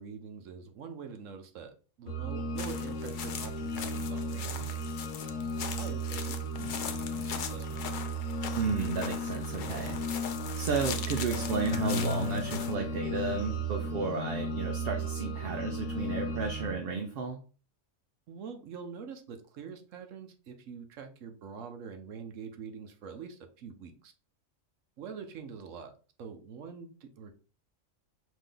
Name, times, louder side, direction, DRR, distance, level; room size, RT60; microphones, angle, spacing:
voice 1, 0.0-4.8 5.8-7.9 18.3-24.1 25.0-25.9 26.2-27.3, right 6 dB, 75° right, 6 dB, 1.1 m, -45 dB
sound 1, 2.1-16.7, right 1 dB, 80° left, 1.2 m, -35 dB
sound 2, 2.6-12.7, left 7 dB, 65° left, 0.5 m, -41 dB
voice 2, 8.6-10.0 10.6-17.4, right 4 dB, 60° right, 4 dB, 0.7 m, -33 dB
5.1 x 2.6 x 3.7 m, 0.37 s
omnidirectional pair, 1.4 m